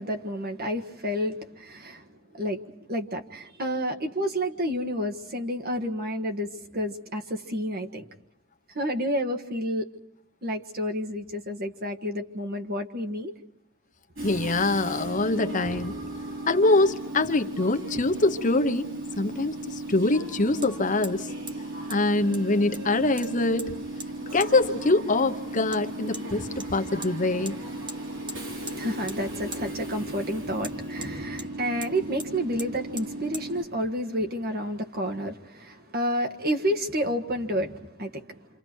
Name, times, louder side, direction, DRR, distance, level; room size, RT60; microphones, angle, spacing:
voice 1, 0.0-8.1 8.7-9.9 10.4-13.3 28.7-38.4, equal, 50° right, 1.6 m, -30 dB
voice 2, 14.2-16.0 16.5-18.9 19.2-21.3 21.9-23.7 24.3-27.6, left 2 dB, 40° left, 1.0 m, -24 dB
Train / Subway metro underground, 14.2-33.6, right 1 dB, 65° right, 3.8 m, -36 dB
Hammer, 20.6-20.7 21.0-21.2 21.5-21.6 21.9-22.0 22.3-22.9 23.2-23.7 24.0-24.1 24.4-24.5 25.7-25.8 26.1-26.3 26.6-27.1 27.5-27.6 27.9-28.0 28.3-28.8 29.1-29.2 29.5-29.6 30.6-31.5 31.8-31.9 32.2-32.3 32.6-32.7 33.0-33.1 33.3-33.5, right 2 dB, 25° right, 1.2 m, -40 dB
28.5 x 27.5 x 4.6 m
head